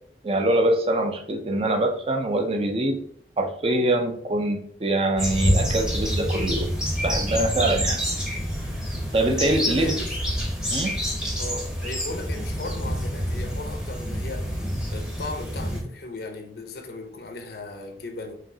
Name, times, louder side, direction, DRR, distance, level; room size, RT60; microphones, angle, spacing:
voice 1, 0.2-3.0 3.4-6.7 7.0-8.0 9.1-10.0 10.7-11.0, right 1 dB, 30° right, 0.5 m, -24 dB
sound 1, 5.2-15.8, equal, 5° right, 0.8 m, -27 dB
voice 2, 9.4-10.2 11.4-14.6 14.9-18.3, left 2 dB, 55° left, 0.6 m, -36 dB
4.9 x 2.9 x 2.7 m
head